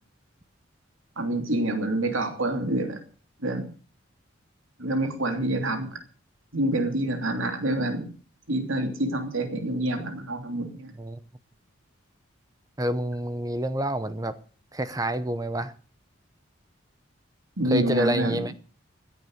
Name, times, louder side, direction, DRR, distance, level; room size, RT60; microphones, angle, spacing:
voice 1, 1.2-3.0 3.4-3.7 4.8-6.0 6.5-8.1 8.5-10.9 17.6-18.4, right 1 dB, 75° right, 2.9 m, -27 dB
voice 2, 12.8-14.3 14.7-15.7 17.7-18.5, right 1 dB, 15° right, 0.8 m, -28 dB
16.5 x 11.0 x 6.5 m
head